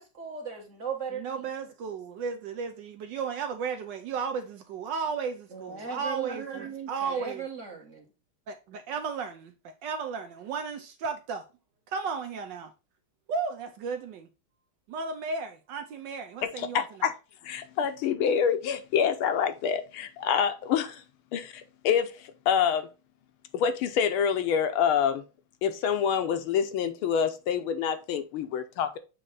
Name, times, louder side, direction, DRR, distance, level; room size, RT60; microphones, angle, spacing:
voice 1, 0.0-1.2 5.5-8.0, right 6 dB, 40° right, 1.5 m, -37 dB
voice 2, 1.1-7.5 8.5-11.4 11.9-12.7 13.3-14.3 14.9-17.0, right 5 dB, 70° right, 1.2 m, -34 dB
voice 3, 16.4-17.1 17.4-21.0 21.3-22.9 23.5-25.2 25.6-29.0, left 7 dB, 80° left, 1.6 m, -27 dB
7.6 x 3.1 x 3.9 m
omnidirectional pair, 2.3 m